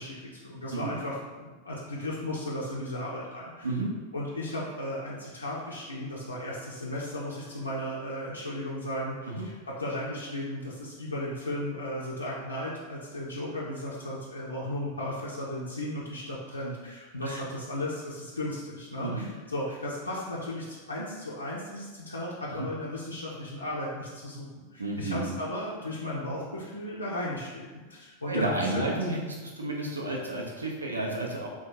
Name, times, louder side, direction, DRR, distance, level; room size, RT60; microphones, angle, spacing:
voice 1, 0.0-3.7 4.1-28.9, left 1 dB, 80° left, -6 dB, 0.5 m, -35 dB
voice 2, 24.8-25.3 28.3-31.5, right 2 dB, 75° right, -1 dB, 0.6 m, -31 dB
3.6 x 2.3 x 4.3 m, 1.3 s
figure-of-eight pair, 90°, 0 cm